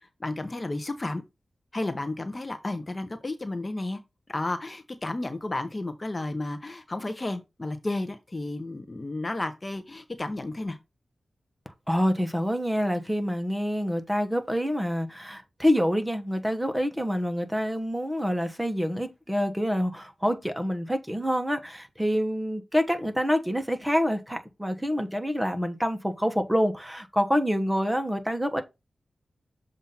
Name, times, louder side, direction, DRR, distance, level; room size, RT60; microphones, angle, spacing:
voice 1, 0.0-1.2 1.7-4.0 4.3-10.8, left 2 dB, 30° left, 0.8 m, -32 dB
voice 2, 11.9-28.6, equal, 5° right, 1.1 m, -27 dB
7.1 x 2.6 x 5.7 m
cardioid pair, 60°, 0 cm